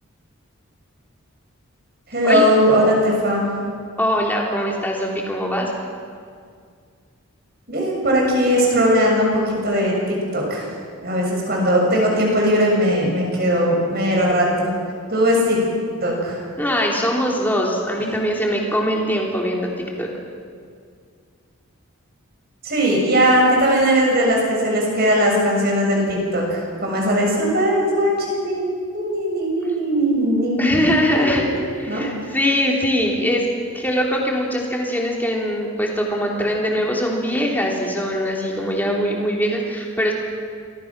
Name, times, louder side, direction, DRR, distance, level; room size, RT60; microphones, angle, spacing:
voice 1, 2.1-3.5 7.7-10.7 11.0-14.7 15.1-15.6 16.0-16.4 18.0-18.1 22.6-32.0, equal, 45° right, -1 dB, 6.7 m, -19 dB
voice 2, 4.0-5.7 16.6-20.1 30.6-31.4 31.8-33.4 33.7-40.1, equal, 10° left, -1 dB, 3.3 m, -22 dB
28.0 x 22.0 x 6.1 m, 2.1 s
head